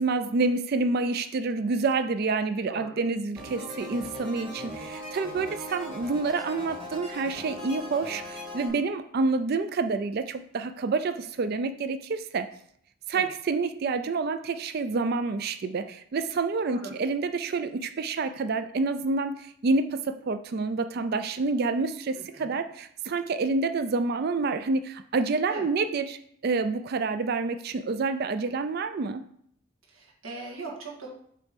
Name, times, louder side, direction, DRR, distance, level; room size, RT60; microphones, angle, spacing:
voice 1, 0.0-12.5 13.1-29.2, right 3 dB, 50° right, 11 dB, 0.4 m, -28 dB
voice 2, 2.7-3.0 13.1-13.3 16.6-16.9 22.2-22.6 25.5-25.7 29.9-31.1, right 3 dB, 80° right, -3 dB, 1.7 m, -40 dB
sound 1, 3.4-8.7, left 1 dB, 25° right, 1.6 m, -39 dB
7.5 x 3.2 x 5.1 m, 0.68 s
head